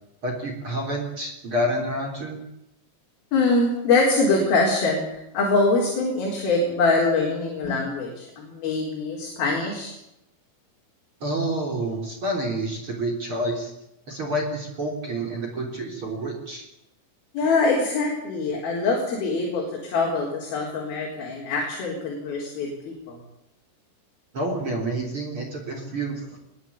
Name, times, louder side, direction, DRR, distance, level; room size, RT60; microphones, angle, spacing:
voice 1, 0.2-2.4 11.2-13.7 14.1-16.6 24.3-26.4, right 1 dB, 30° right, 1 dB, 3.7 m, -28 dB
voice 2, 3.3-10.0 17.3-23.2, left 3 dB, 50° left, -1 dB, 5.5 m, -24 dB
20.5 x 20.5 x 8.6 m, 0.83 s
omnidirectional pair, 6.0 m